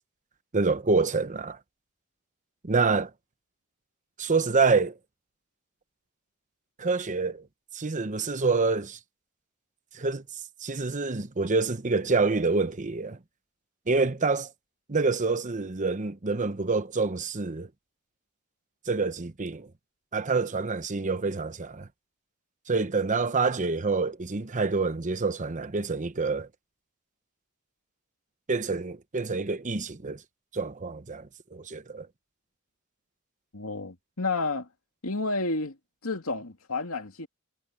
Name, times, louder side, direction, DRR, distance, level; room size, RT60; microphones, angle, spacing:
voice 1, 0.5-1.6 2.6-3.1 4.2-5.0 6.8-7.5 7.7-9.0 9.9-10.2 10.6-13.2 13.9-14.5 14.9-17.7 18.9-19.7 20.1-21.9 22.7-26.5 28.5-30.2 30.5-32.1, right 4 dB, 35° right, 0.9 m, -27 dB
voice 2, 33.5-34.7 35.0-35.8 36.0-37.3, left 3 dB, 85° left, 2.4 m, -30 dB
head